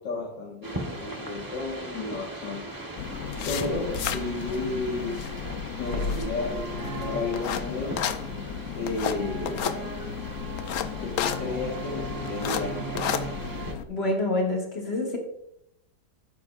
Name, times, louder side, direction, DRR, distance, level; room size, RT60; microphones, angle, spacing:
voice 1, 0.0-2.7 3.4-5.2 5.7-8.1 8.8-9.7 11.0-12.8, left 3 dB, 80° left, -4 dB, 2.3 m, -32 dB
sound 1, 0.6-13.7, right 3 dB, 15° right, 0.8 m, -38 dB
sound 2, 3.0-13.8, left 7 dB, 65° left, 0.8 m, -32 dB
voice 2, 13.9-15.2, left 2 dB, 35° left, 0 dB, 2.2 m, -27 dB
11.5 x 9.5 x 2.5 m, 0.80 s
omnidirectional pair, 1.9 m